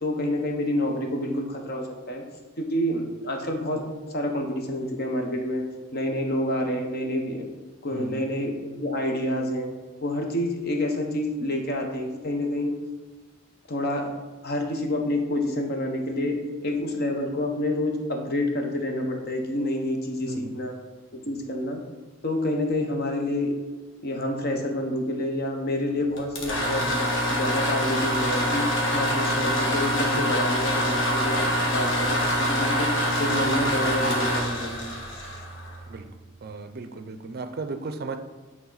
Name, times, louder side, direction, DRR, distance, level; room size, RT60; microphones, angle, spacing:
voice 1, 0.0-2.2 2.6-5.6 5.9-7.5 7.8-9.7 10.0-12.7 13.7-14.1 14.4-20.8 21.2-21.8 22.2-23.5 24.0-27.0 27.3-32.9 33.2-34.9, left 1 dB, 50° left, 2 dB, 1.0 m, -28 dB
voice 2, 7.9-8.2 20.3-20.5 35.9-36.1 36.4-38.2, right 3 dB, 50° right, 8 dB, 0.5 m, -35 dB
sound 1, 26.2-36.0, equal, 70° left, 1.4 m, -25 dB
8.8 x 3.6 x 3.9 m, 1.3 s
head